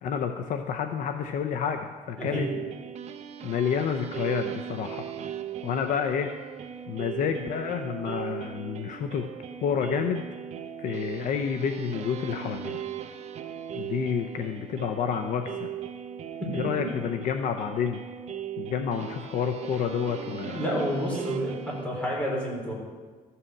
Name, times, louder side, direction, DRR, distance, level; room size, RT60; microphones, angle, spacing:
voice 1, 0.0-2.5 3.4-5.0 5.6-6.3 6.9-9.3 9.6-10.3 10.8-12.8 13.7-15.7 16.5-18.0 18.6-20.6, left 7 dB, 60° left, 6 dB, 0.7 m, -29 dB
voice 2, 2.2-2.5 16.4-16.7 20.5-22.7, equal, 5° left, -4 dB, 3.9 m, -30 dB
sound 1, 2.2-21.9, right 9 dB, 50° right, 0.7 m, -38 dB
13.5 x 5.7 x 7.2 m, 1.4 s
cardioid pair, 135°, 15 cm